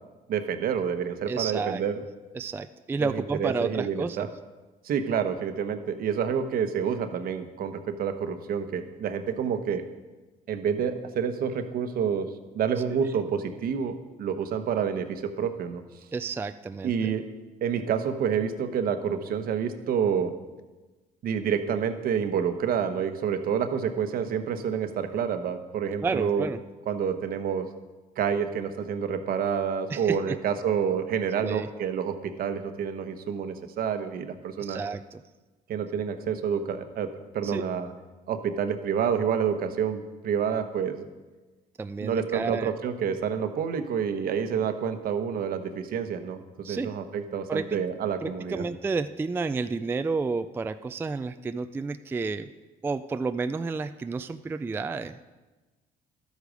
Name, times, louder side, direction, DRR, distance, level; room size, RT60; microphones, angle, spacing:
voice 1, 0.3-2.0 3.0-4.3 4.8-9.8 10.5-12.3 12.5-15.8 16.8-17.2 17.6-20.3 21.2-26.5 26.9-27.7 28.2-34.8 35.7-37.1 37.3-37.9 38.3-41.1 42.0-48.6, right 7 dB, 60° right, 8 dB, 1.0 m, -28 dB
voice 2, 1.3-1.8 2.3-4.3 16.1-17.1 26.0-26.6 29.9-30.4 31.4-31.7 34.6-35.2 37.4-37.7 41.8-42.7 46.6-46.9 47.5-47.8 48.2-52.5 52.8-55.2, right 4 dB, 15° right, 10 dB, 0.3 m, -31 dB
12.0 x 8.3 x 5.1 m, 1.2 s
cardioid pair, 110°, 17 cm